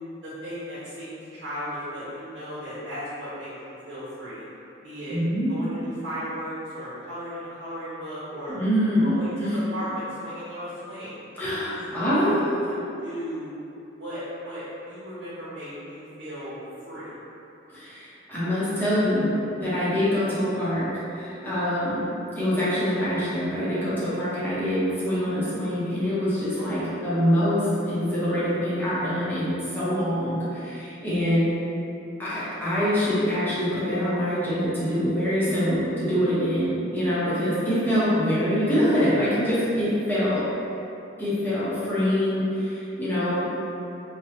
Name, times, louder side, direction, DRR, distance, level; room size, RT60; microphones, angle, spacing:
voice 1, 0.2-4.4 4.8-5.2 5.5-8.6 9.0-11.2 11.7-11.8 12.1-12.7 13.0-13.5 14.0-16.6 16.8-17.1 26.6-27.0 37.5-37.8 40.7-40.8, equal, 75° right, -11 dB, 0.8 m, -36 dB
voice 2, 5.1-5.5 8.5-9.6 11.4-12.6 17.7-19.3 19.6-22.0 22.4-31.5 32.2-40.4 41.2-43.5, equal, 10° left, -12 dB, 0.8 m, -25 dB
2.9 x 2.2 x 3.2 m, 2.8 s
head